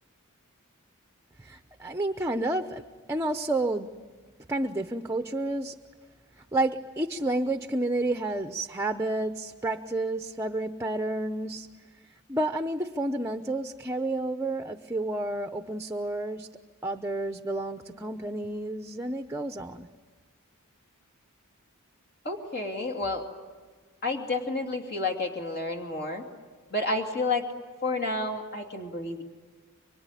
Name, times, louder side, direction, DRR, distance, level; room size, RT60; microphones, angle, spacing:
voice 1, 1.4-2.8 3.1-4.0 4.5-5.7 6.5-11.7 12.3-16.5 16.8-19.9, right 2 dB, 10° right, 7 dB, 0.8 m, -30 dB
voice 2, 22.2-23.2 24.0-26.2 26.7-27.4 27.8-29.2, left 2 dB, 45° left, 4 dB, 2.7 m, -30 dB
24.5 x 24.5 x 9.9 m, 1.4 s
head